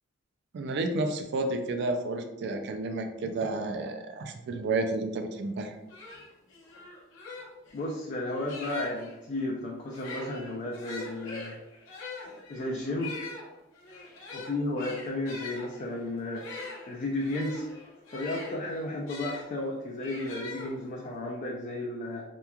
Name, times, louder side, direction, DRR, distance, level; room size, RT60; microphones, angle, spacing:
voice 1, 0.5-5.7, right 2 dB, 55° right, 6 dB, 0.3 m, -31 dB
sound 1, 5.5-5.6 5.9-9.1 9.8-19.4 20.0-21.1, left 3 dB, 70° left, 0.7 m, -43 dB
voice 2, 7.7-11.6 12.3-13.2 14.3-16.5 16.9-17.7 18.1-22.2, left 1 dB, 40° left, -3 dB, 0.3 m, -33 dB
2.9 x 2.2 x 2.2 m, 0.93 s
head